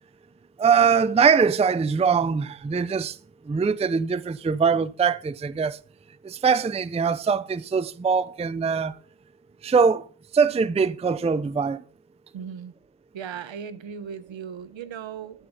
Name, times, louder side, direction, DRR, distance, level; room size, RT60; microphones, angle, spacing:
voice 1, 0.6-3.2 3.5-5.8 6.2-9.0 9.6-10.1 10.3-11.8, right 6 dB, 15° right, 0.4 m, -22 dB
voice 2, 12.3-12.7 13.1-15.5, right 7 dB, 70° right, 1.1 m, -37 dB
12.5 x 9.0 x 3.9 m
wide cardioid pair, 105°, 47 cm